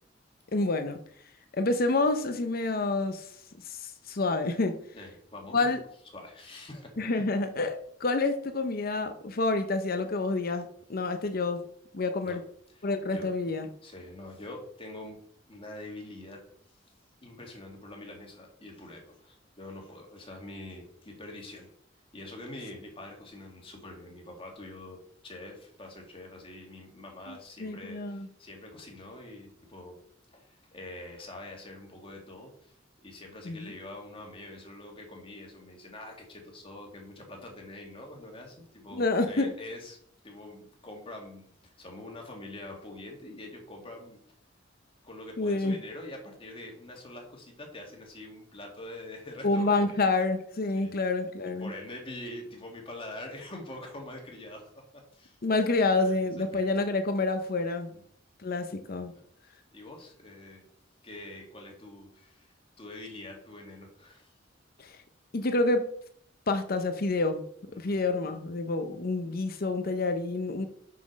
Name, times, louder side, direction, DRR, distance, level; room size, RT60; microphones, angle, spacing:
voice 1, 0.5-1.0 1.5-3.3 3.6-4.8 5.5-5.8 7.0-11.7 11.9-12.4 12.8-13.7 27.3-28.3 33.4-33.7 38.9-39.5 45.4-45.8 49.4-51.7 55.4-57.9 58.4-59.1 64.8-65.0 65.3-65.9 66.5-67.4 67.8-70.7, left 3 dB, 50° left, 8 dB, 0.7 m, -28 dB
voice 2, 4.9-5.8 6.1-7.0 12.2-12.4 12.7-13.3 13.8-16.5 17.2-21.7 22.1-30.0 30.3-32.7 33.0-40.0 40.2-44.2 45.0-49.8 50.7-50.9 51.4-55.4 56.0-56.6 57.9-58.0 59.1-59.2 59.7-60.7 61.0-62.5 62.8-64.3 67.7-68.0, left 1 dB, 30° left, 1 dB, 2.2 m, -45 dB
6.2 x 5.9 x 6.1 m, 0.63 s
head